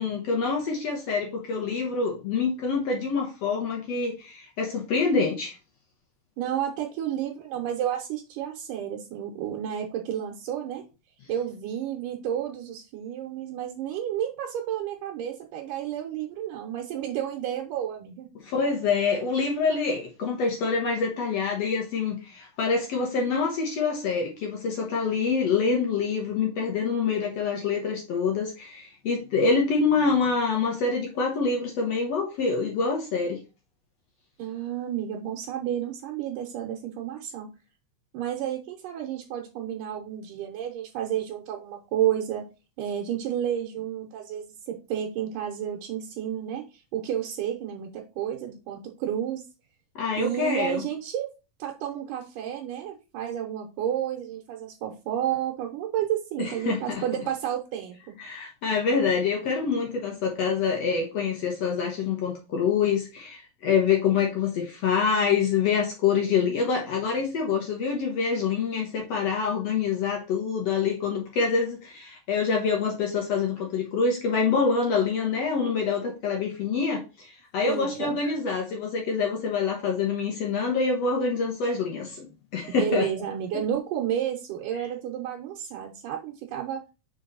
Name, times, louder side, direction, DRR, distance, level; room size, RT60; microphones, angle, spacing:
voice 1, 0.0-5.6 18.4-33.4 50.0-50.8 56.4-57.0 58.2-82.3 82.5-83.1 84.7-84.9, left 5 dB, 65° left, 1.8 m, -26 dB
voice 2, 6.4-10.8 11.3-18.3 34.4-37.5 38.1-42.4 42.8-49.4 50.2-51.3 51.6-58.2 77.7-78.2 82.8-86.8, right 10 dB, 80° right, 2.5 m, -31 dB
5.3 x 4.6 x 3.9 m
omnidirectional pair, 3.9 m